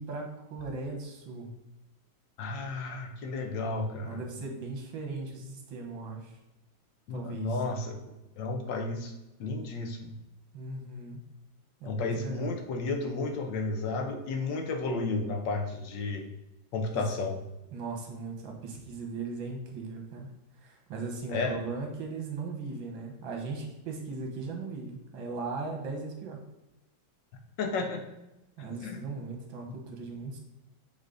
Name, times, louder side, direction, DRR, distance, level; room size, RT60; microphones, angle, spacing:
voice 1, 0.0-1.6 4.1-6.4 7.1-7.6 10.5-11.2 11.8-12.6 16.9-17.0 17.7-20.3 20.6-26.4 28.6-30.4, right 3 dB, 75° right, 2 dB, 1.9 m, -38 dB
voice 2, 2.4-4.2 7.1-9.1 9.4-10.1 11.8-16.2 16.7-17.4 21.3-21.6 27.6-28.1 28.8-29.0, left 3 dB, 70° left, 4 dB, 1.4 m, -32 dB
7.2 x 3.8 x 3.8 m, 0.97 s
omnidirectional pair, 2.2 m